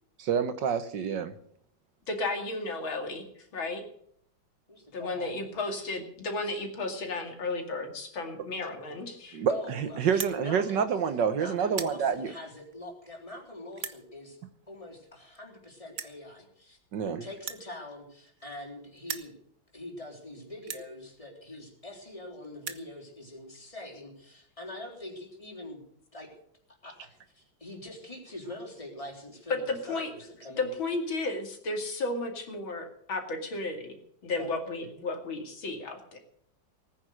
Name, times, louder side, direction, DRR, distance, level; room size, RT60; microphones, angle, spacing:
voice 1, 0.2-1.3 9.3-12.3 16.9-17.2, right 7 dB, 65° right, 11 dB, 1.6 m, -28 dB
voice 2, 2.1-3.2 3.5-3.8 4.9-9.4 29.5-30.1 30.6-36.2, left 2 dB, 80° left, 4 dB, 3.2 m, -33 dB
voice 3, 4.7-5.6 9.5-10.8 11.3-14.4 14.7-16.8 17.0-19.3 19.7-25.8 26.1-26.3 26.8-30.7 34.3-34.5, left 1 dB, 15° left, 0 dB, 4.0 m, -43 dB
sound 1, 10.1-10.4 11.0-11.3 11.6-12.0 12.7-12.8 13.7-14.0 15.1-15.2 15.3-15.4 15.9-16.2 17.4-18.7 19.0-19.3 20.0-20.1 20.6-20.9 21.8-21.9 22.1-22.2 22.4-22.9, right 7 dB, 45° right, 1.1 m, -38 dB
19.0 x 9.9 x 6.4 m, 0.66 s
omnidirectional pair, 2.1 m